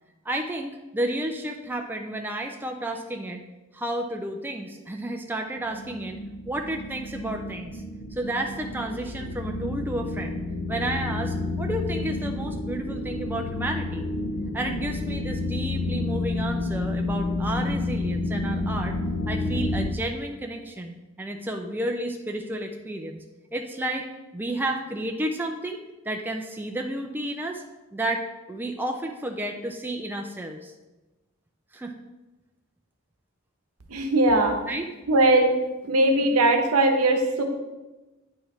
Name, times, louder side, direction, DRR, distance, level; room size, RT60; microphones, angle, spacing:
voice 1, 0.3-3.4 3.7-6.2 6.5-7.8 8.1-10.4 10.7-14.1 14.5-19.0 19.3-23.2 23.5-25.8 26.1-27.6 27.9-30.7 31.7-32.0 34.7-34.9, right 1 dB, 10° right, 3 dB, 0.4 m, -31 dB
sound 1, 5.3-19.9, left 2 dB, 65° left, 0.7 m, -30 dB
voice 2, 33.9-34.6 35.1-35.5 35.8-37.4, right 2 dB, 75° right, 4 dB, 0.9 m, -20 dB
9.1 x 4.6 x 3.2 m, 1.1 s
head